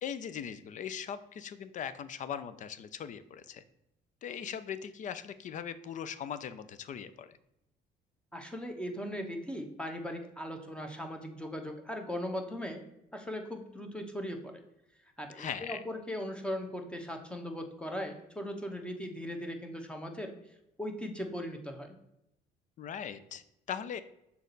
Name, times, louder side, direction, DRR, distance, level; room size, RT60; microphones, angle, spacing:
voice 1, 0.0-3.6 4.2-7.4 15.4-15.8 22.8-24.0, left 8 dB, 50° left, 13 dB, 0.5 m, -40 dB
voice 2, 8.3-12.8 13.1-14.5 15.2-20.3 20.8-22.0, equal, 5° left, 4 dB, 1.0 m, -38 dB
6.3 x 4.2 x 3.9 m, 0.85 s
cardioid pair, 110°, 17 cm